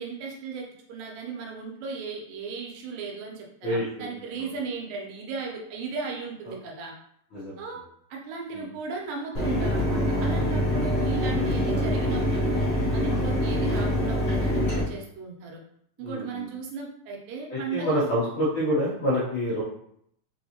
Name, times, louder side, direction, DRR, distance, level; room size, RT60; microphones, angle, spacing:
voice 1, 0.0-6.9 7.6-7.8 8.1-12.6 12.9-15.6 16.0-18.1, right 5 dB, 80° right, 0 dB, 2.5 m, -36 dB
voice 2, 3.6-4.1 4.4-4.5 7.3-7.6 8.5-8.7 16.0-16.5 17.5-19.6, equal, 85° left, -10 dB, 1.1 m, -27 dB
Mechanisms, 9.3-14.8, equal, 45° left, 0.8 m, -25 dB
5.4 x 2.6 x 2.8 m, 0.70 s
omnidirectional pair, 3.9 m